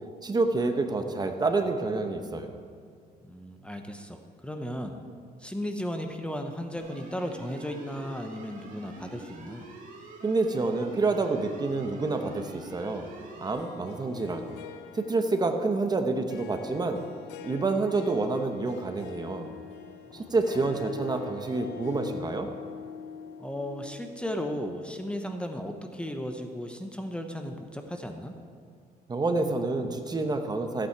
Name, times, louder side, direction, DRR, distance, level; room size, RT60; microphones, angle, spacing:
voice 1, 0.2-2.5 10.2-13.1 13.4-14.5 14.9-17.0 17.4-19.5 20.1-22.5 29.1-30.9, right 3 dB, 25° right, 6 dB, 0.9 m, -28 dB
voice 2, 3.2-4.9 5.4-9.7 20.2-20.3 20.6-20.8 23.4-28.3, equal, 5° left, 5 dB, 0.9 m, -35 dB
sound 1, 6.8-13.5, right 2 dB, 50° right, 2.4 m, -46 dB
Harp, 13.5-24.7, left 8 dB, 90° left, 0.7 m, -44 dB
14.5 x 8.7 x 4.6 m, 2.2 s
cardioid pair, 110°, 17 cm